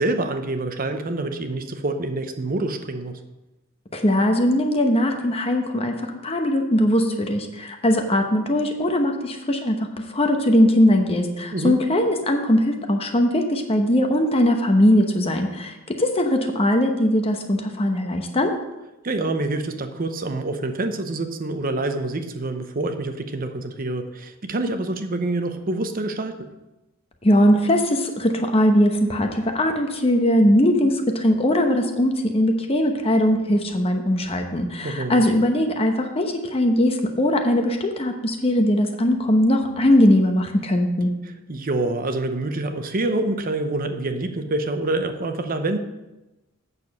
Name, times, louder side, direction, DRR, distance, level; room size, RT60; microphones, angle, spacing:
voice 1, 0.0-3.2 11.5-11.8 19.0-26.4 34.8-35.2 41.5-45.8, right 2 dB, 45° right, 8 dB, 0.8 m, -26 dB
voice 2, 3.9-18.5 27.2-41.1, left 1 dB, 30° left, 4 dB, 0.9 m, -20 dB
8.3 x 6.8 x 5.4 m, 1.0 s
head